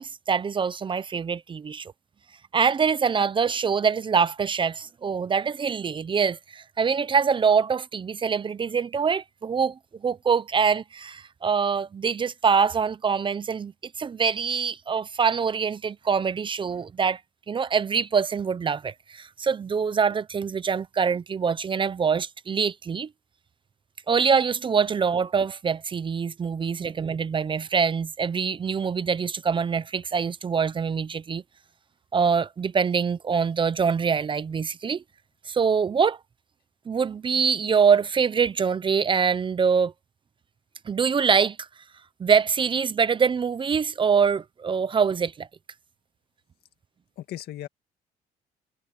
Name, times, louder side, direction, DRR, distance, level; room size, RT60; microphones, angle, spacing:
voice 1, 0.0-1.9 2.5-13.7 14.0-17.2 17.5-23.1 24.1-31.4 32.1-35.0 35.5-36.2 36.9-39.9 40.9-41.7 42.2-45.5, right 6 dB, 30° right, 0.7 m, -24 dB
voice 2, 26.5-26.8 47.2-47.7, left 13 dB, 70° left, 2.0 m, -38 dB
cardioid pair, 110°, 17 cm